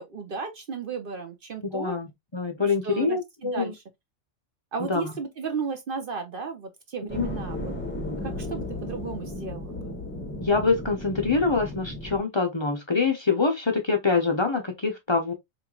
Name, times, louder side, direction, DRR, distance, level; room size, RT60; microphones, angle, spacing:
voice 1, 0.0-2.0 2.8-3.8 4.7-7.7 8.2-10.0, right 5 dB, 50° right, 0.8 m, -34 dB
voice 2, 1.6-2.1 2.3-3.7 4.8-5.1 7.0-7.3 10.4-15.3, left 4 dB, 30° left, 0.5 m, -25 dB
sound 1, 7.1-12.2, left 1 dB, 10° left, 0.9 m, -34 dB
4.5 x 3.1 x 2.3 m
omnidirectional pair, 1.4 m